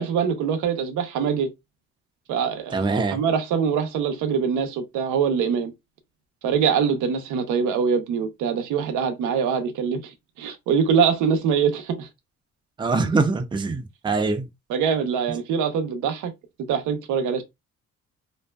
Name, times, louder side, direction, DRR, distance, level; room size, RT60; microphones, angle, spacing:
voice 1, 0.0-1.5 2.3-2.8 3.1-5.7 6.4-10.1 10.4-12.1 14.7-16.3 16.7-17.4, right 6 dB, 90° right, 0.6 m, -23 dB
voice 2, 2.7-3.2 12.8-14.5, right 3 dB, 15° right, 0.4 m, -23 dB
2.6 x 2.1 x 2.2 m
cardioid pair, 90°, 30 cm